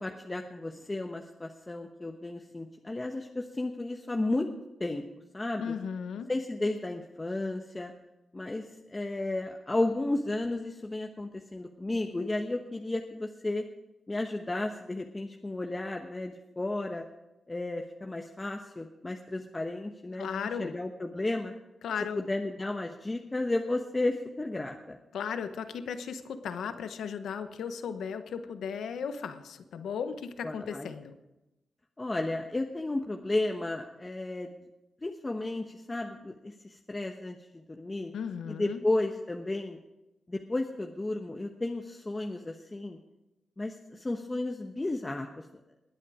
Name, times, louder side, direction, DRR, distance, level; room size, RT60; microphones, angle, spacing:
voice 1, 0.0-4.5 4.8-5.0 5.3-5.8 6.3-7.9 8.3-13.6 14.1-17.1 17.5-21.5 22.1-25.0 30.4-30.9 32.0-34.6 35.0-38.1 38.5-39.8 40.3-43.0 43.6-45.5, left 2 dB, 25° left, 3 dB, 1.1 m, -33 dB
voice 2, 5.6-6.3 20.2-20.7 21.8-22.2 25.1-31.1 38.1-38.8, left 6 dB, 90° left, 10 dB, 1.0 m, -36 dB
21.0 x 8.4 x 5.0 m, 0.96 s
cardioid pair, 75°, 0 cm